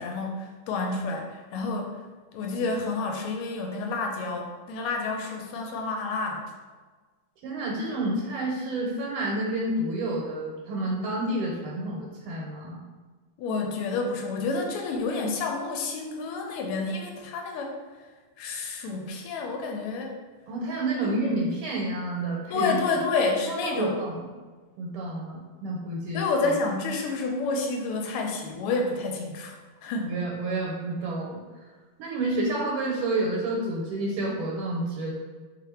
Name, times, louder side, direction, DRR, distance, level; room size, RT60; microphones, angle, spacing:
voice 1, 0.0-1.9 2.3-6.4 13.4-17.7 18.4-20.1 21.0-21.1 22.5-24.0 26.1-29.6 29.8-30.1, left 3 dB, 90° left, 2 dB, 1.5 m, -29 dB
voice 2, 7.4-12.8 20.5-22.9 23.5-24.2 24.8-26.2 30.0-31.4 32.0-35.1, right 2 dB, 85° right, -3 dB, 1.6 m, -29 dB
3.5 x 2.5 x 4.1 m, 1.4 s
omnidirectional pair, 2.4 m